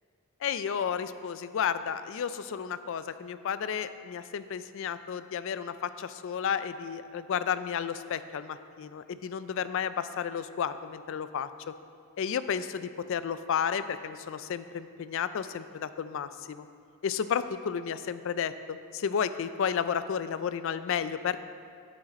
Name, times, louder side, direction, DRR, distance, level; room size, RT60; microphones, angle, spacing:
voice 1, 0.4-11.5 12.2-16.7 17.0-21.4, left 7 dB, 65° left, 12 dB, 0.4 m, -32 dB
10.5 x 6.3 x 4.2 m, 2.3 s
head